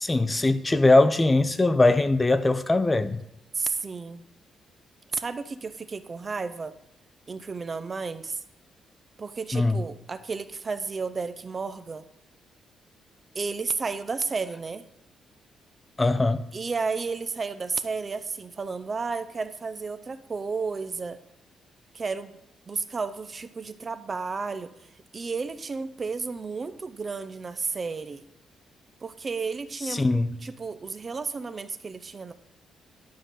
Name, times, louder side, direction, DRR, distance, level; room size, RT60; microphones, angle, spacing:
voice 1, 0.0-3.2 9.5-9.8 16.0-16.4 29.9-30.3, left 2 dB, 20° left, 0.5 m, -21 dB
voice 2, 3.5-4.2 5.1-6.7 7.3-8.4 9.2-12.0 13.3-14.9 16.5-21.2 21.9-22.3 22.7-24.7 25.1-28.2 29.0-30.0 30.4-32.3, right 4 dB, 35° right, 0.6 m, -32 dB
11.5 x 3.8 x 6.3 m
cardioid pair, 110°, 0 cm